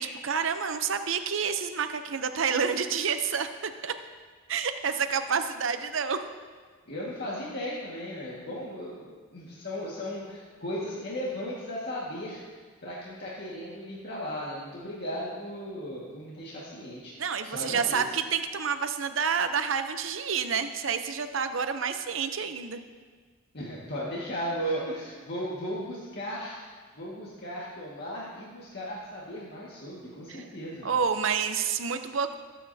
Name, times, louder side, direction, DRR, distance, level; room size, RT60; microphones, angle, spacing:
voice 1, 0.0-3.9 4.5-6.2 17.2-22.8 30.3-30.4 30.8-32.3, right 6 dB, 65° right, 8 dB, 0.7 m, -29 dB
voice 2, 6.9-17.2 17.4-18.2 23.5-26.6 26.9-31.3, equal, 55° left, -6 dB, 1.8 m, -36 dB
21.0 x 8.5 x 2.8 m, 1.5 s
head